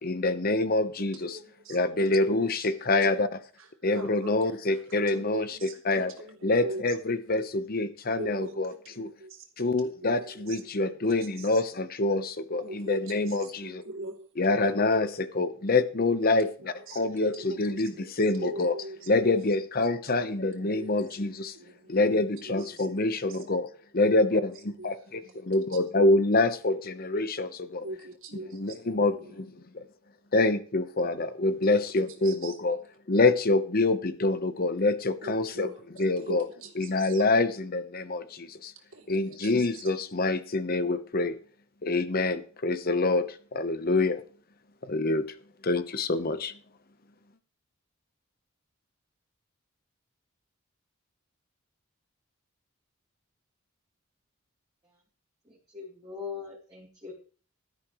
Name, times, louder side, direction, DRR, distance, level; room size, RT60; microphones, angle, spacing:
voice 1, 0.0-1.4 1.7-3.4 3.8-6.1 6.4-9.1 9.6-13.8 14.4-18.7 19.1-21.5 21.9-27.8 28.5-29.8 30.3-32.8 33.1-35.7 36.0-36.4 36.8-38.7 39.1-41.4 41.8-44.2 44.8-45.3 45.6-46.5, left 2 dB, 45° left, 1.0 m, -26 dB
voice 2, 1.0-1.8 2.1-2.9 3.6-6.8 8.2-10.6 11.4-11.6 12.5-14.3 16.2-16.3 16.6-18.1 18.4-19.2 20.5-21.0 21.5-23.4 24.0-24.3 24.8-25.0 27.8-29.4 31.6-32.0 32.2-32.5 35.2-37.2 38.9-39.8, right 2 dB, 75° right, 3.0 m, -43 dB
voice 3, 55.5-57.1, left 6 dB, 20° right, 3.6 m, -41 dB
16.5 x 12.5 x 3.1 m
head